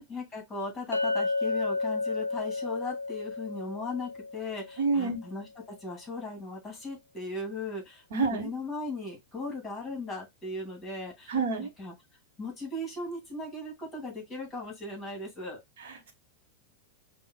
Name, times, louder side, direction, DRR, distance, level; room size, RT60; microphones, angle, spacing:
voice 1, 0.0-5.5 5.8-8.0 8.3-11.9 12.4-15.6, left 2 dB, 15° left, 2.4 m, -38 dB
Chink clink, 0.9-5.2, left 3 dB, 85° left, 0.3 m, -32 dB
voice 2, 4.8-5.2 8.1-8.5 11.3-11.7 15.8-16.1, right 4 dB, 60° right, 1.1 m, -28 dB
5.4 x 2.4 x 2.2 m
figure-of-eight pair, 90°, 0 cm